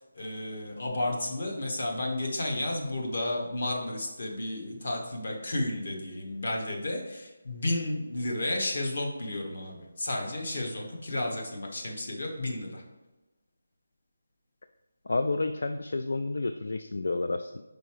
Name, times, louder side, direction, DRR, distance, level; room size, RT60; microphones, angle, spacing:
voice 1, 0.1-12.8, left 1 dB, 50° left, 0 dB, 1.3 m, -32 dB
voice 2, 15.1-17.6, left 3 dB, 70° left, 8 dB, 0.3 m, -30 dB
5.1 x 4.5 x 4.8 m, 1.1 s
figure-of-eight pair, 175°, 0 cm